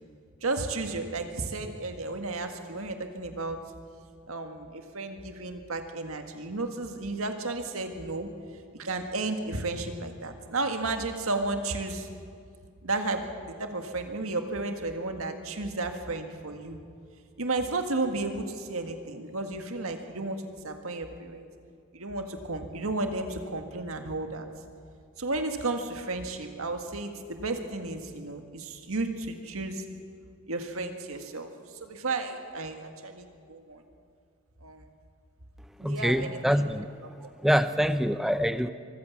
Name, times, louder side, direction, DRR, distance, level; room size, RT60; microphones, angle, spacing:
voice 1, 0.4-3.6 4.3-8.3 8.7-12.1 12.8-16.8 17.4-21.5 21.9-24.5 25.2-29.8 30.5-31.5 31.8-33.8 34.6-34.9 35.8-36.7, right 2 dB, 80° right, 1.8 m, -33 dB
voice 2, 35.8-36.9 37.4-38.7, equal, ahead, 0.5 m, -25 dB
24.0 x 15.0 x 7.3 m
head